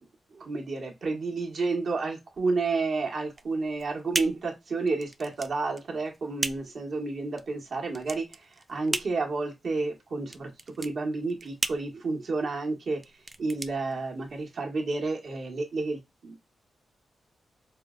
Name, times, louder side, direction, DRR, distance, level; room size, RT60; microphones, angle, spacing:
voice 1, 0.3-10.5 10.8-13.0 13.4-16.3, right 3 dB, 70° right, 1 dB, 1.2 m, -30 dB
sound 1, 3.3-14.6, right 2 dB, 25° right, 0.3 m, -37 dB
4.8 x 2.1 x 2.3 m, 0.21 s
cardioid pair, 75°, 0 cm